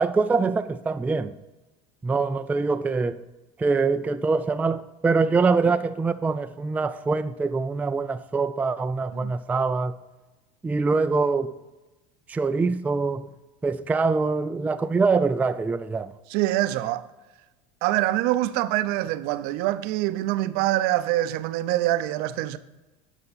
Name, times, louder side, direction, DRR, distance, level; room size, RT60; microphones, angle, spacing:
voice 1, 0.0-1.4 2.0-3.2 3.6-10.0 10.6-11.5 12.3-13.3 13.6-16.1, right 4 dB, 10° right, 0.3 m, -24 dB
voice 2, 16.3-17.0 17.8-22.6, right 15 dB, 60° right, 0.5 m, -25 dB
9.6 x 5.8 x 4.1 m
supercardioid pair, 100°, 18 cm